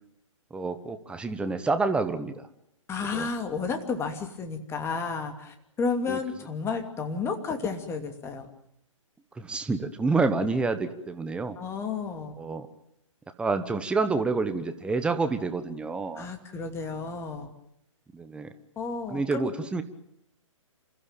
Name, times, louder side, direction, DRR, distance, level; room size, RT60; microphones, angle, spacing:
voice 1, 0.5-2.5 3.1-3.3 6.1-6.2 9.4-11.6 12.4-12.7 13.4-16.3 18.1-18.5 19.1-19.8, right 3 dB, 5° right, 9 dB, 1.2 m, -28 dB
voice 2, 2.9-8.5 11.6-12.4 16.2-17.5 18.8-19.5, left 5 dB, 15° left, 6 dB, 2.7 m, -32 dB
28.5 x 15.0 x 8.9 m, 0.77 s
figure-of-eight pair, 130°, 17 cm